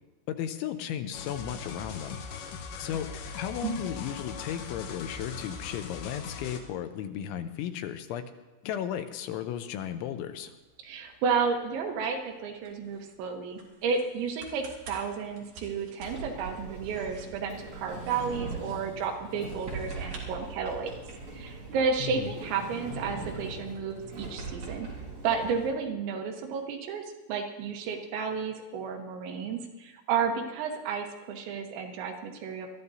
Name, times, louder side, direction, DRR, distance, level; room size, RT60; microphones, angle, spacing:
voice 1, 0.3-2.2 2.8-3.1 3.4-8.2 8.6-10.5 22.0-22.3, left 10 dB, 90° left, 9 dB, 3.1 m, -35 dB
sound 1, 1.1-6.6, left 5 dB, 75° left, 3.1 m, -40 dB
sound 2, 10.3-21.1, right 3 dB, 55° right, 3.6 m, -53 dB
voice 2, 10.8-20.9 21.3-24.9 25.2-27.0 27.3-32.7, right 5 dB, 75° right, 3 dB, 3.4 m, -32 dB
Sliding door, 16.0-25.7, right 3 dB, 35° right, 5.1 m, -41 dB
22.0 x 13.5 x 2.7 m, 1.1 s
omnidirectional pair, 5.4 m